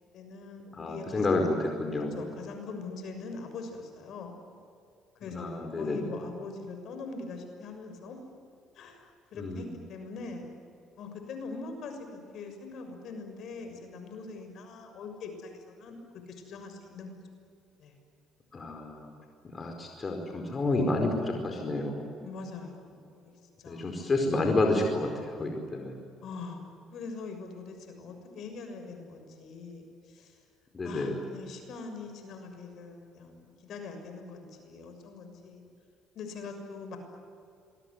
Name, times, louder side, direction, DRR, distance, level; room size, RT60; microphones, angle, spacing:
voice 1, 0.1-1.4 2.1-4.3 5.2-5.5 5.8-8.2 8.7-10.5 11.0-15.9 16.3-17.1 17.8-17.9 22.2-24.0 26.2-26.6 26.9-30.4 30.8-35.6 36.1-37.0, left 4 dB, 65° left, 5 dB, 6.6 m, -42 dB
voice 2, 0.8-2.2 5.3-6.0 9.4-9.7 18.5-19.1 19.5-22.1 23.7-26.0 30.7-31.2, left 2 dB, 30° left, 3 dB, 4.7 m, -30 dB
27.0 x 22.0 x 10.0 m, 2.5 s
cardioid pair, 95°, 0 cm